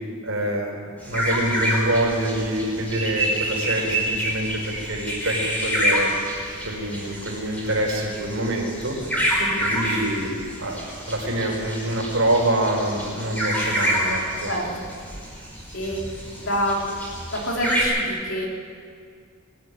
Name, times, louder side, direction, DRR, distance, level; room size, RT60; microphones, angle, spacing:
voice 1, 0.2-6.1 6.6-9.0 9.4-14.5, right 1 dB, 65° right, -1 dB, 5.2 m, -26 dB
sound 1, 1.0-17.8, equal, 5° left, 5.0 m, -28 dB
voice 2, 14.5-14.9 15.7-16.1 16.4-16.9 17.3-18.5, equal, 60° left, -2 dB, 4.0 m, -26 dB
22.0 x 12.5 x 9.6 m, 2.2 s
head